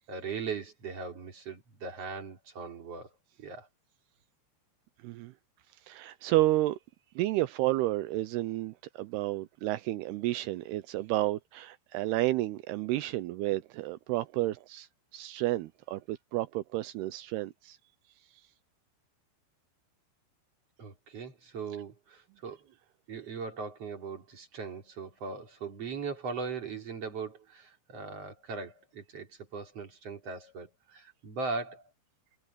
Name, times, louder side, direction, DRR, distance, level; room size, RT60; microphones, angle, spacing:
voice 1, 0.1-3.1 3.4-3.7 20.8-22.7 23.1-31.8, right 4 dB, 35° right, 3.9 m, -39 dB
voice 2, 5.9-6.8 7.2-14.9 15.1-17.8, right 16 dB, 80° right, 2.4 m, -31 dB
omnidirectional pair, 5.1 m